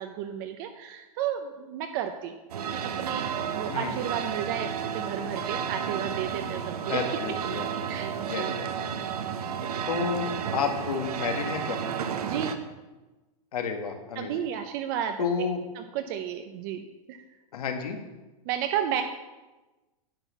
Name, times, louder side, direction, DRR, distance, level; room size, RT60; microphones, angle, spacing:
voice 1, 0.0-2.4 2.7-7.0 7.9-8.5 9.3-9.7 12.2-12.6 14.2-15.2 15.8-17.2 18.5-19.0, right 9 dB, 35° right, 6 dB, 0.6 m, -33 dB
sound 1, 2.5-12.6, right 7 dB, 90° right, 1.1 m, -32 dB
voice 2, 3.7-4.0 6.9-8.9 9.9-11.8 13.5-14.3 15.2-15.6 17.5-18.0, left 5 dB, 80° left, 5 dB, 1.9 m, -31 dB
10.0 x 5.5 x 8.1 m, 1.1 s
supercardioid pair, 160°, 19 cm